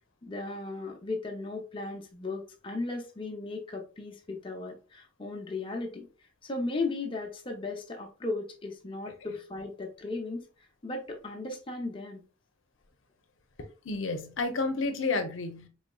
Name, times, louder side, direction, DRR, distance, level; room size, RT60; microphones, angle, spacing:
voice 1, 0.2-6.1 6.4-10.5 10.8-12.2, left 3 dB, 25° left, 0.5 m, -36 dB
voice 2, 13.8-15.7, left 3 dB, 75° left, 0.6 m, -30 dB
4.0 x 3.1 x 2.2 m
head